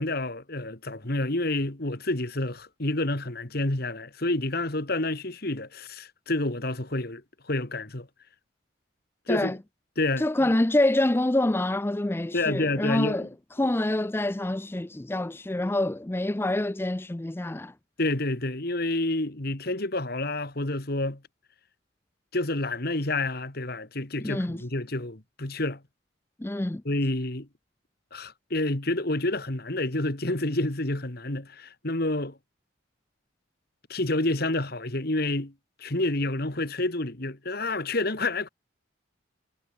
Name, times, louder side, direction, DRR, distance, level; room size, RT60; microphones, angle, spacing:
voice 1, 0.0-7.2 7.5-8.1 9.3-9.6 10.0-10.5 12.3-13.3 13.6-13.7 18.0-21.2 22.3-25.8 26.9-27.5 28.1-32.4 33.9-35.5 35.8-38.5, left 2 dB, 50° left, 2.1 m, -29 dB
voice 2, 10.2-13.3 13.6-17.7 24.2-24.6 26.4-26.8, left 1 dB, 10° left, 0.4 m, -26 dB
head